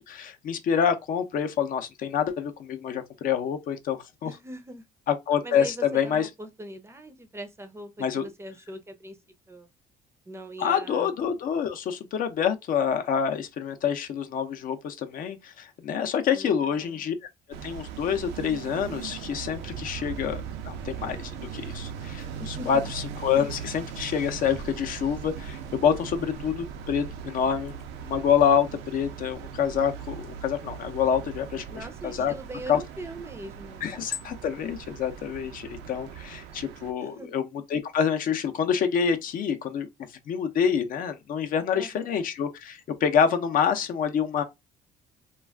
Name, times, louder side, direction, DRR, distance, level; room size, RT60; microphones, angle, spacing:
voice 1, 0.0-4.3 5.1-6.3 8.0-8.2 10.6-17.1 17.6-27.7 28.0-32.3 32.7-32.8 33.8-39.9 40.3-44.4, left 7 dB, 55° left, 0.5 m, -27 dB
voice 2, 4.2-4.8 5.4-9.2 9.5-9.7 10.3-11.1 16.3-17.0 22.4-22.9 31.7-33.9 37.0-37.3 41.7-42.2, right 1 dB, 15° right, 0.5 m, -41 dB
sound 1, 17.5-36.9, right 7 dB, 85° right, 0.5 m, -39 dB
2.3 x 2.3 x 3.3 m
cardioid pair, 110°, 17 cm